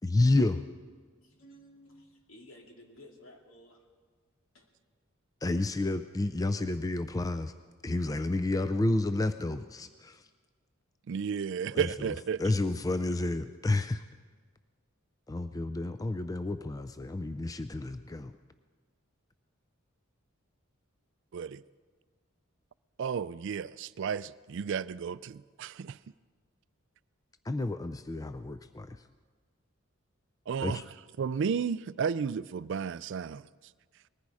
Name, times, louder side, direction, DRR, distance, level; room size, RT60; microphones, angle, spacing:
voice 1, 0.0-0.6 5.4-7.5 7.8-10.3 11.7-12.1 12.4-14.0 15.3-18.3 27.5-29.0 30.6-30.8, left 2 dB, 15° left, 0.4 m, -30 dB
voice 2, 1.2-3.8 4.5-4.7, left 1 dB, 75° left, 2.3 m, -54 dB
voice 3, 11.1-12.4 21.3-21.6 23.0-26.0 30.5-30.8 31.2-33.4, right 6 dB, 60° right, 0.4 m, -33 dB
20.0 x 14.5 x 4.9 m
head